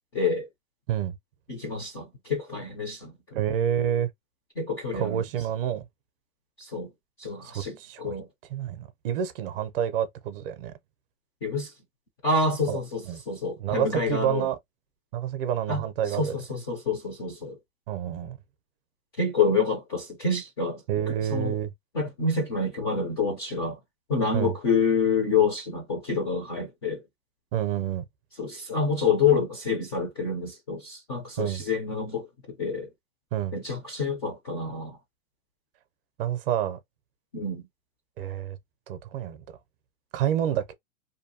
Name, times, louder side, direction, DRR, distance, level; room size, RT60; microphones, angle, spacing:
voice 1, 0.1-0.5 1.5-3.1 4.6-5.2 6.6-6.9 7.2-8.3 11.4-11.7 12.2-14.5 15.7-15.8 16.2-17.6 19.2-20.8 21.1-21.5 21.9-23.8 24.1-27.0 28.4-32.3 32.6-32.9 33.5-35.0 37.3-37.6, left 4 dB, 20° left, 0.3 m, -27 dB
voice 2, 3.3-4.1 4.9-5.9 7.4-8.2 8.5-10.7 12.7-12.8 13.1-13.2 13.6-14.6 15.1-16.4 17.9-18.4 20.9-21.7 24.3-24.5 27.5-28.1 31.4-31.6 33.3-33.6 36.2-36.8 38.2-38.6 38.9-39.4 40.1-40.6, right 10 dB, 45° right, 0.5 m, -28 dB
2.7 x 2.2 x 2.6 m
hypercardioid pair, 145°, 41 cm